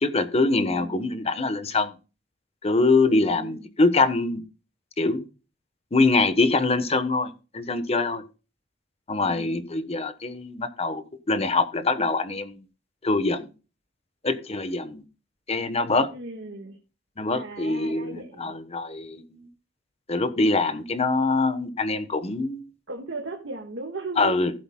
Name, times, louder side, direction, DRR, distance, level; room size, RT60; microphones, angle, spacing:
voice 1, 0.0-1.9 2.6-4.4 5.0-5.2 5.9-8.2 9.1-12.6 13.0-13.5 14.2-15.0 15.5-16.1 17.2-19.5 20.1-22.7 24.2-24.5, left 3 dB, 35° left, 11 dB, 1.0 m, -24 dB
voice 2, 0.6-1.2 3.2-3.7 9.2-9.6 16.1-16.8 17.3-18.5 22.9-24.4, right 2 dB, 70° right, 2 dB, 1.6 m, -37 dB
15.5 x 7.8 x 2.2 m, 0.32 s
head